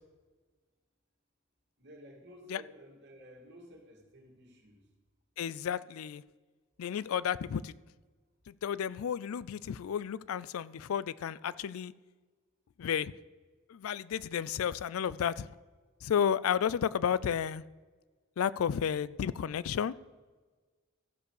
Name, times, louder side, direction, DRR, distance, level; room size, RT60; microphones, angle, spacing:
voice 1, 1.8-4.8, equal, 55° right, 2.3 m, -53 dB
voice 2, 5.4-6.2 6.8-7.7 8.5-11.9 12.8-13.1 13.7-15.5 16.0-17.6 18.4-19.9, left 8 dB, 80° left, 0.4 m, -32 dB
14.5 x 5.2 x 6.5 m
head